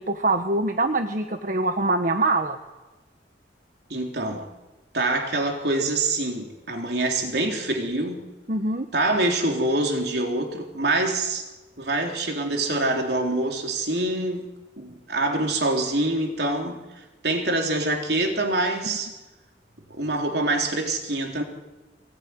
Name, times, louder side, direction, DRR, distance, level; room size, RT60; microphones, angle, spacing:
voice 1, 0.0-2.6 8.5-8.9, right 2 dB, 45° right, 6 dB, 1.3 m, -24 dB
voice 2, 3.9-4.5 4.9-8.2 8.9-11.5 11.8-14.5 14.8-19.1 19.9-21.4, right 2 dB, 65° right, 3 dB, 3.6 m, -25 dB
24.0 x 19.0 x 9.7 m, 1.1 s
head